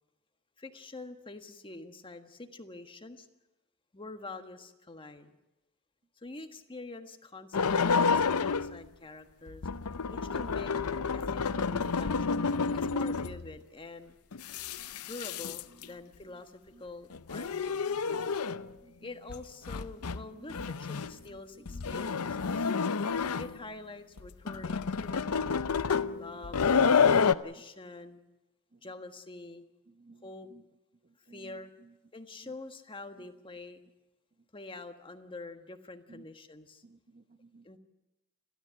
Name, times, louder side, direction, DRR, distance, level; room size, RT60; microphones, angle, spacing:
voice 1, 0.6-3.3 3.9-5.4 6.2-9.7 10.1-10.7 11.1-12.5 12.7-14.2 15.1-17.9 19.0-22.7 23.4-26.6 27.2-28.2 28.8-29.6 30.2-30.5 31.3-31.7 32.1-33.8 34.5-36.8 37.6-37.8, left 2 dB, 25° left, 7 dB, 1.5 m, -46 dB
sound 1, 7.5-8.8 9.5-13.5 14.3-15.9 17.1-18.7 19.3-19.4 19.7-20.2 20.5-21.2 21.7-23.6 24.2-27.3, left 5 dB, 80° left, 0.7 m, -29 dB
voice 2, 15.7-16.4 16.7-16.8 17.8-18.4 18.8-19.1 19.9-20.0 20.3-20.8 21.2-22.6 28.7-28.9 29.9-30.6 31.0-31.9 32.4-32.6 33.2-33.3 36.1-36.3 36.8-37.7, right 3 dB, 35° right, 10 dB, 0.9 m, -57 dB
30.0 x 13.0 x 8.2 m, 0.99 s
head